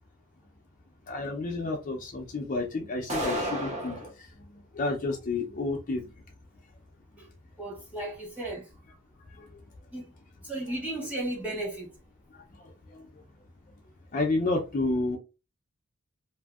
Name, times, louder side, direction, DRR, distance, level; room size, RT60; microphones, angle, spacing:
voice 1, 1.1-4.0 4.7-6.0 12.9-13.0 14.1-15.2, left 2 dB, 35° left, 0.5 m, -30 dB
sound 1, 3.1-4.1, equal, 30° right, 0.8 m, -31 dB
voice 2, 7.6-8.7 9.9-10.1 10.4-11.9, right 1 dB, 5° right, 1.1 m, -34 dB
2.7 x 2.6 x 2.3 m
head